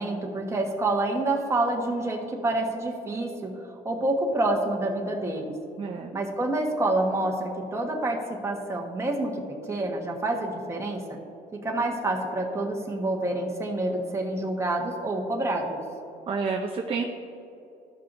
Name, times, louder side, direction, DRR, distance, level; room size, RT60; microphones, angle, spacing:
voice 1, 0.0-5.5 6.1-11.2 11.5-15.8, right 2 dB, 15° right, -1 dB, 1.3 m, -28 dB
voice 2, 5.8-6.1 16.3-17.0, right 5 dB, 30° right, 1 dB, 0.6 m, -29 dB
14.0 x 5.5 x 2.6 m, 2.7 s
cardioid pair, 110°, 17 cm